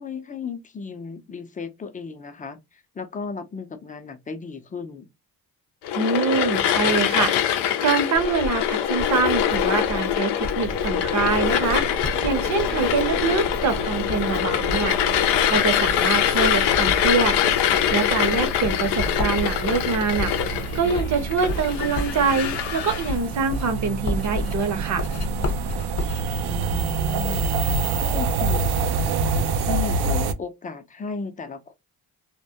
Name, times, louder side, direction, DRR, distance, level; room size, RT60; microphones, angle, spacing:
voice 1, 0.0-5.1 26.4-31.7, left 5 dB, 20° left, 0.5 m, -35 dB
sound 1, 5.8-23.1, left 10 dB, 85° left, 0.5 m, -23 dB
voice 2, 5.9-7.3 7.8-11.9 12.2-15.0 15.5-17.4 17.9-20.3 20.7-25.0, right 5 dB, 45° right, 0.7 m, -24 dB
Writing, 8.2-27.7, left 2 dB, 40° left, 0.9 m, -33 dB
sound 2, 10.6-30.3, right 4 dB, 75° right, 0.5 m, -29 dB
2.2 x 2.0 x 2.7 m
supercardioid pair, 75°, 40 cm